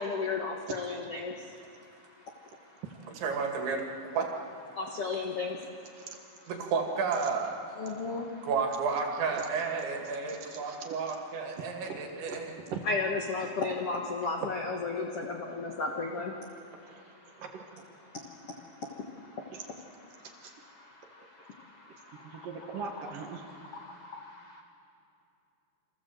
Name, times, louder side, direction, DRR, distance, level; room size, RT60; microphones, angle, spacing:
voice 1, 0.0-2.8 4.7-6.1 7.8-8.5 12.8-16.7 17.2-17.4 18.1-19.6 20.1-20.3 20.7-22.5 23.5-24.6, left 4 dB, 90° left, 1 dB, 1.3 m, -36 dB
voice 2, 0.7-1.0 2.8-3.1 6.0-6.2 9.3-9.4 10.3-11.2 11.6-12.0 12.3-12.9 14.4-14.5 16.8-18.0 19.5-19.7 20.2-20.5 21.0-21.1 22.1-23.5, right 6 dB, 60° right, 3 dB, 2.8 m, -42 dB
voice 3, 3.2-3.9 4.1-4.3 6.5-7.5 8.0-8.1 8.4-12.5, right 5 dB, 80° right, 2 dB, 4.6 m, -31 dB
28.0 x 25.0 x 7.8 m, 2.6 s
omnidirectional pair, 5.2 m